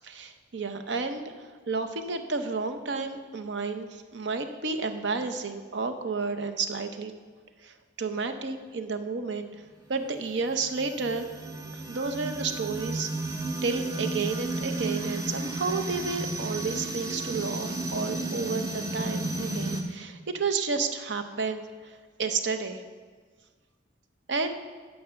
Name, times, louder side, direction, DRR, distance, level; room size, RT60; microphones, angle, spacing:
voice 1, 0.0-1.3 1.7-7.1 7.6-9.5 9.9-11.3 11.7-22.8 24.3-24.5, right 4 dB, 65° right, 8 dB, 0.7 m, -31 dB
sound 1, 10.0-19.8, right 2 dB, 20° right, 0.7 m, -33 dB
9.1 x 5.5 x 6.6 m, 1.5 s
head